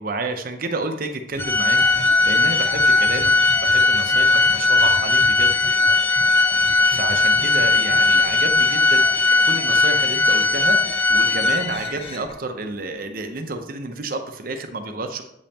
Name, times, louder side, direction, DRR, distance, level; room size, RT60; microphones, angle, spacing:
voice 1, 0.0-3.3 3.6-5.7 6.9-15.2, right 2 dB, 50° right, 7 dB, 0.7 m, -30 dB
sound 1, 1.3-6.3 6.6-7.6 7.9-8.0, left 1 dB, 60° left, 1.7 m, -38 dB
Organ, 1.4-12.0, left 3 dB, 15° left, 0.4 m, -18 dB
sound 2, 1.7-12.3, left 2 dB, 35° left, 0.8 m, -36 dB
8.0 x 5.2 x 2.9 m, 0.81 s
head